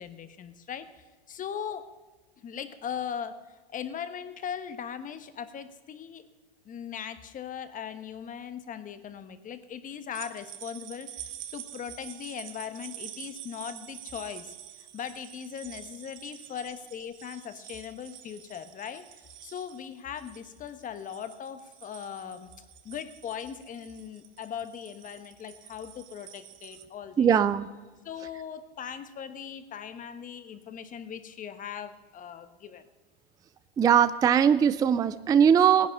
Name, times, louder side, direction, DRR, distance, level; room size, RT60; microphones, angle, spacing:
voice 1, 0.0-1.9 2.4-6.2 6.6-22.5 22.8-27.3 28.0-32.8, left 8 dB, 25° left, 11 dB, 1.1 m, -39 dB
sound 1, 10.1-26.8, right 11 dB, 40° right, 1.1 m, -47 dB
voice 2, 27.2-27.7 33.8-35.9, right 8 dB, 15° right, 14 dB, 0.4 m, -20 dB
17.5 x 10.5 x 5.4 m, 1.3 s
hypercardioid pair, 120°, 30 cm